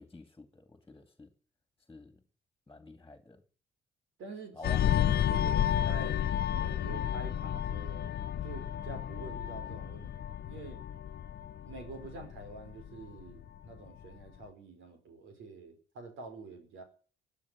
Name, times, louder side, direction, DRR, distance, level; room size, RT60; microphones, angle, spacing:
voice 1, 0.0-1.3 1.9-2.2 2.7-3.4 4.5-5.2, left 2 dB, 15° left, 2.3 m, -49 dB
voice 2, 4.2-6.2 6.5-8.1 8.4-10.8 11.6-16.8, right 3 dB, 80° right, 5.3 m, -47 dB
sound 1, 4.6-13.7 14.0-14.3, left 10 dB, 55° left, 0.7 m, -32 dB
16.0 x 9.5 x 9.5 m
cardioid pair, 90°, 20 cm